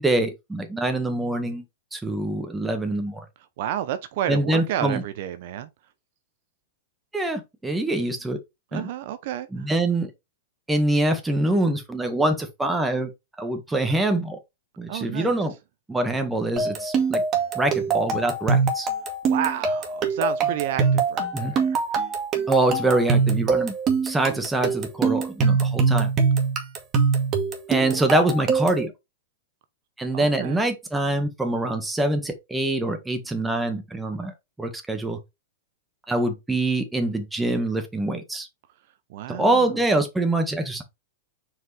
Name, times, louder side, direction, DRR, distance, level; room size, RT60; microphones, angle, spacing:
voice 1, 0.0-1.6 1.9-3.2 4.3-5.0 7.1-8.4 8.7-8.9 9.5-10.1 10.7-13.1 13.4-14.4 14.8-15.5 15.9-17.2 17.5-18.9 21.3-21.5 22.5-23.7 24.0-26.1 27.7-28.9 30.0-34.3 34.6-35.2 36.1-38.5 39.3-40.8, right 2 dB, 10° right, 1.7 m, -24 dB
voice 2, 3.6-5.7 8.7-9.7 14.9-15.3 19.3-21.8 27.8-28.0 30.1-30.6 39.1-39.6, right 11 dB, 60° right, 0.7 m, -31 dB
sound 1, 16.6-28.9, right 5 dB, 30° right, 2.0 m, -23 dB
5.8 x 4.8 x 3.4 m
hypercardioid pair, 110°, 0 cm